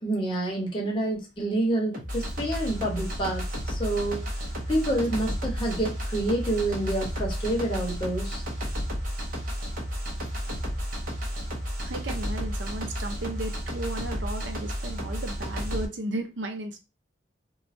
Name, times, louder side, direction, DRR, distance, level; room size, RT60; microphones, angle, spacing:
voice 1, 0.0-4.3 4.7-8.4, right 1 dB, 25° left, 0.9 m, -28 dB
sound 1, 1.9-15.9, equal, 45° right, 0.8 m, -32 dB
voice 2, 11.8-16.8, right 2 dB, 75° right, 0.5 m, -35 dB
3.1 x 2.2 x 2.5 m
head